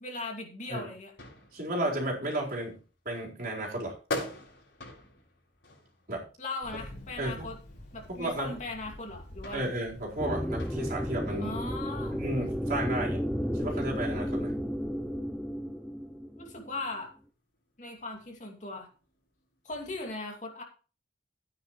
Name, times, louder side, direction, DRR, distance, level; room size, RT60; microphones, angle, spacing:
voice 1, 0.0-1.1 6.4-7.6 7.9-9.7 11.4-12.2 16.4-17.1 17.8-18.9 19.6-20.6, left 2 dB, 40° left, 2 dB, 2.5 m, -38 dB
sound 1, 0.8-20.1, left 2 dB, 75° left, 5.7 m, -47 dB
voice 2, 1.5-2.7 3.0-3.9 6.1-6.3 6.7-6.8 7.2-7.4 8.2-8.6 9.5-11.5 12.1-13.2 13.5-14.5, right 1 dB, 50° right, -2 dB, 4.5 m, -33 dB
Thunder, 6.6-14.8, left 1 dB, 55° left, 5.3 m, -50 dB
sound 2, 10.2-16.8, equal, ahead, 0.5 m, -33 dB
13.5 x 9.4 x 3.2 m, 0.36 s
head